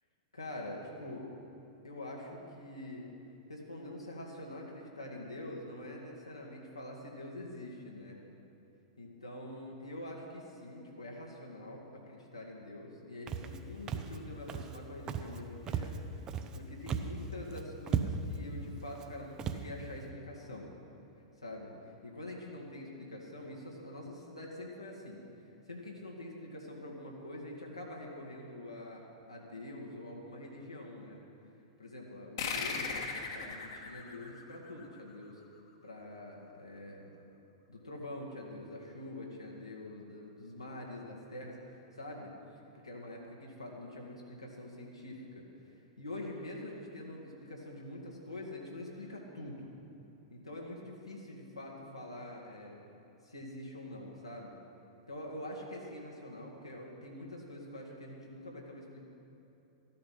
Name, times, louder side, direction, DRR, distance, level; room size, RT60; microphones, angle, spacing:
voice 1, 0.3-1.3 1.8-3.1 3.5-8.2 9.0-20.7 21.4-25.2 25.7-31.2 31.8-35.4 35.8-37.1 37.7-42.3 42.8-49.7 50.3-52.8 53.2-54.6 55.1-59.0, left 1 dB, 85° left, -2 dB, 2.0 m, -45 dB
Walk footsteps, 13.3-13.6 13.9-14.2 14.5-14.8 15.1-15.4 15.7-16.6 16.9-17.2 17.5-17.6 17.9-18.4 18.9-19.1 19.4-19.7, right 7 dB, 25° right, 0.7 m, -35 dB
sound 1, 32.4-35.4, left 5 dB, 55° left, 1.6 m, -38 dB
14.0 x 12.0 x 5.6 m, 3.0 s
figure-of-eight pair, 100°, 3 cm